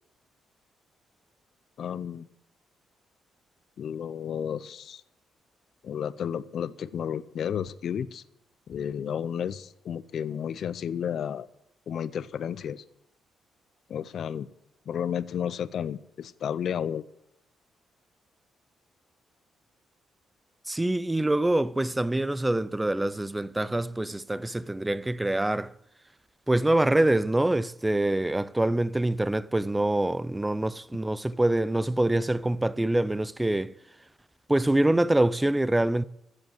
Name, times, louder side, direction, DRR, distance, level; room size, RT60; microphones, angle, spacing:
voice 1, 1.8-2.3 3.8-5.0 5.8-8.2 8.7-11.5 11.9-12.8 13.9-14.5 14.9-17.0, left 8 dB, 60° left, 0.6 m, -32 dB
voice 2, 20.7-25.7 26.5-33.7 34.5-36.0, right 1 dB, 10° right, 0.5 m, -25 dB
14.5 x 8.0 x 7.8 m
cardioid pair, 90°, 0 cm